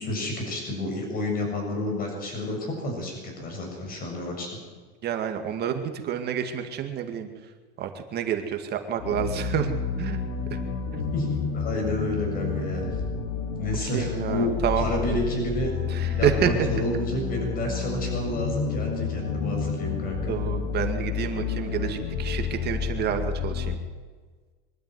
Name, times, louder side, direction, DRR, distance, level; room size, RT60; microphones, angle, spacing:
voice 1, 0.0-4.5 11.1-12.8 13.6-14.5 14.8-15.7 16.0-20.3, left 1 dB, 25° left, 2 dB, 7.4 m, -30 dB
voice 2, 5.0-7.3 7.8-9.7 10.0-10.6 10.9-11.1 13.9-15.2 15.9-16.5 20.3-23.8, right 9 dB, 30° right, 5 dB, 2.1 m, -29 dB
sound 1, 9.0-23.7, left 6 dB, 50° left, 3.1 m, -30 dB
23.5 x 12.5 x 9.5 m, 1.4 s
supercardioid pair, 145°, 33 cm